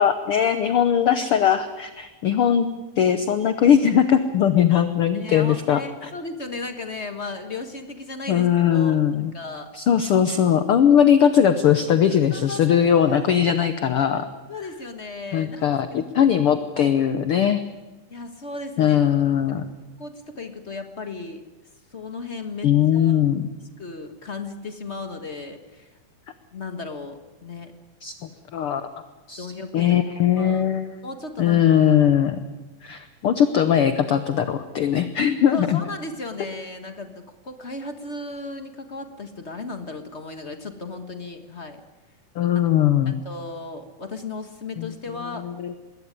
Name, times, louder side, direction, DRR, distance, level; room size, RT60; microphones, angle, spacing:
voice 1, 0.0-2.7 3.0-6.1 8.3-9.3 9.7-14.3 15.3-17.6 18.8-19.6 22.6-23.5 28.0-28.1 28.5-28.9 29.3-29.5 29.7-31.0 31.4-32.4 32.8-35.8 42.3-43.1 44.8-44.9 45.4-45.7, left 9 dB, 70° left, 10 dB, 1.4 m, -20 dB
voice 2, 5.1-9.0 9.3-9.7 11.9-13.4 14.5-15.6 15.9-16.0 16.8-16.9 18.1-19.0 20.0-21.4 21.9-23.2 23.8-25.9 26.5-27.7 29.4-30.1 30.4-30.6 31.0-32.0 35.5-41.8 43.2-45.4, left 3 dB, 45° left, 7 dB, 0.9 m, -35 dB
21.0 x 17.0 x 9.8 m, 1.2 s
omnidirectional pair, 3.6 m